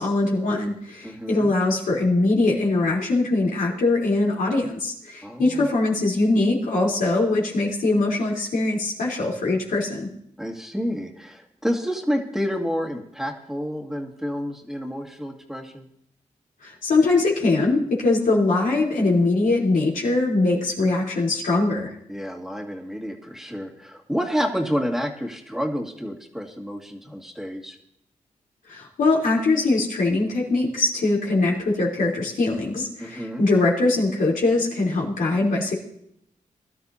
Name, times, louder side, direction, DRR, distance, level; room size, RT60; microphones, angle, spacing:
voice 1, 0.0-10.1 16.6-21.9 28.7-35.7, left 2 dB, 90° left, -3 dB, 3.7 m, -22 dB
voice 2, 1.0-1.5 5.2-5.7 10.4-15.8 22.1-27.8 33.0-33.5, equal, 5° right, 1 dB, 2.0 m, -29 dB
21.5 x 12.0 x 2.8 m, 0.71 s
cardioid pair, 70°, 14 cm